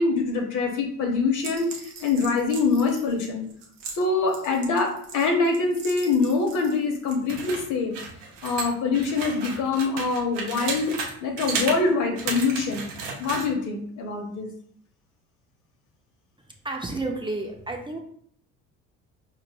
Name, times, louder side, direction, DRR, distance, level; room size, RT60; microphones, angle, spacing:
voice 1, 0.0-3.4 3.9-7.9 8.4-10.9 11.2-12.9 13.2-14.5, left 4 dB, 60° left, 2 dB, 1.1 m, -24 dB
sound 1, 1.4-6.8 7.1-11.1 11.4-11.8 12.2-13.5, right 4 dB, 85° right, 0.8 m, -34 dB
voice 2, 16.6-18.0, right 2 dB, 15° right, 1 dB, 0.7 m, -31 dB
4.8 x 3.1 x 2.2 m, 0.63 s
hypercardioid pair, 65°, 36 cm